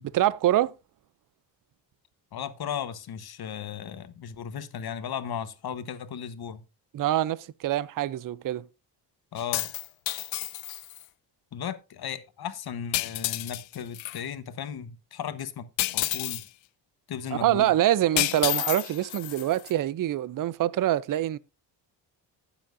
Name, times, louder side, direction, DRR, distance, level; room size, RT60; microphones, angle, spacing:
voice 1, 0.1-0.7 6.9-8.6 17.3-21.4, right 13 dB, 45° right, 0.5 m, -25 dB
voice 2, 2.3-6.6 9.3-9.7 11.5-15.7 15.9-16.4 17.1-17.7, left 8 dB, 55° left, 1.2 m, -36 dB
sound 1, 9.4-11.0 12.9-14.2 15.8-16.5 18.2-19.7, left 18 dB, 85° left, 0.6 m, -30 dB
12.5 x 8.9 x 2.6 m
cardioid pair, 85°, 45 cm